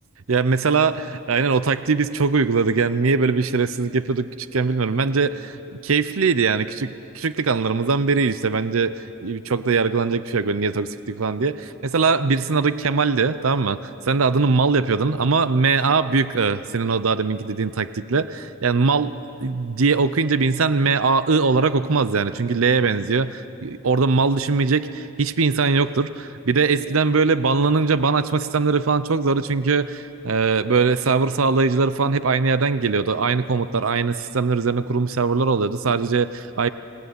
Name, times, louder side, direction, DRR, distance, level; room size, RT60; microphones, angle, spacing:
voice 1, 0.3-5.6 5.8-19.1 19.4-36.7, right 4 dB, 80° right, 13 dB, 0.7 m, -21 dB
26.0 x 18.5 x 9.5 m, 2.7 s
head